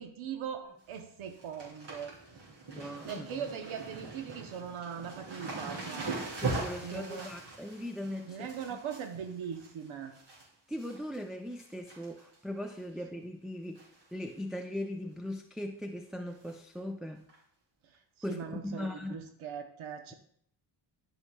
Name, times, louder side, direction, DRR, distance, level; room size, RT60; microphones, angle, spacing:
voice 1, 0.0-2.2 2.7-6.3 6.8-7.3 8.3-10.1 17.8-18.0 18.3-20.1, right 7 dB, 85° right, 5 dB, 0.8 m, -40 dB
sound 1, 0.6-1.0 1.2-10.4 10.8-11.2 11.5-12.4 12.7-12.8 13.7-14.0 14.3-14.4 14.8-14.9 16.4-16.5 17.3-17.4, right 3 dB, 60° right, 3.4 m, -41 dB
voice 2, 2.7-3.5 6.4-8.8 10.7-17.2 18.2-19.2, left 1 dB, ahead, 2 dB, 0.4 m, -39 dB
12.5 x 5.6 x 2.3 m, 0.65 s
cardioid pair, 95°, 47 cm